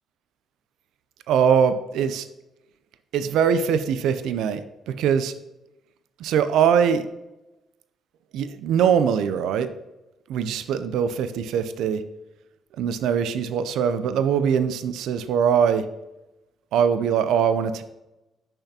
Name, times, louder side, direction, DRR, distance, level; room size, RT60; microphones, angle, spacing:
voice 1, 1.3-2.3 3.1-4.6 4.9-5.3 6.2-7.1 8.3-9.7 10.3-12.0 12.8-15.9 16.7-17.8, right 7 dB, 85° right, 11 dB, 0.4 m, -22 dB
6.7 x 5.7 x 2.8 m, 0.96 s
cardioid pair, 90°, 0 cm